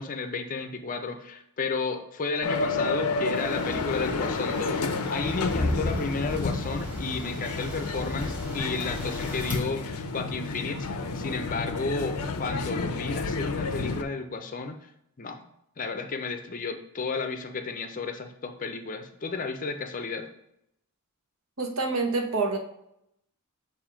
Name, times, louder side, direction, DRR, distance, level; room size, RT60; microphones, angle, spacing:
voice 1, 0.0-4.8 5.1-14.9 15.2-15.5 15.8-20.3, left 4 dB, 35° left, 6 dB, 0.5 m, -32 dB
sound 1, 2.4-14.0, left 3 dB, 85° left, 0.6 m, -31 dB
sound 2, 3.3-9.5, left 1 dB, 5° right, 1.3 m, -35 dB
voice 2, 21.6-22.6, right 3 dB, 65° right, 3 dB, 1.0 m, -27 dB
7.2 x 2.7 x 5.0 m, 0.79 s
head